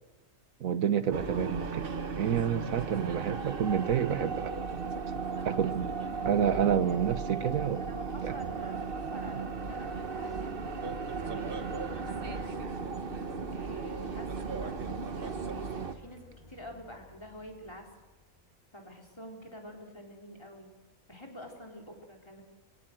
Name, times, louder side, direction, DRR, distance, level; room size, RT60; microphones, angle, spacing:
voice 1, 0.6-4.5 5.4-5.9 6.2-7.9 8.2-8.3, right 8 dB, 75° right, 11 dB, 1.4 m, -29 dB
sound 1, 1.1-15.9, right 5 dB, 45° right, 1.3 m, -36 dB
voice 2, 6.0-6.5 6.8-7.1 7.8-13.1 13.5-16.2 16.5-17.9 18.7-20.8 21.1-22.4, equal, 20° left, 0 dB, 3.9 m, -48 dB
sound 2, 8.2-18.4, left 1 dB, 45° left, 3.9 m, -50 dB
24.0 x 17.0 x 7.8 m, 1.2 s
omnidirectional pair, 1.5 m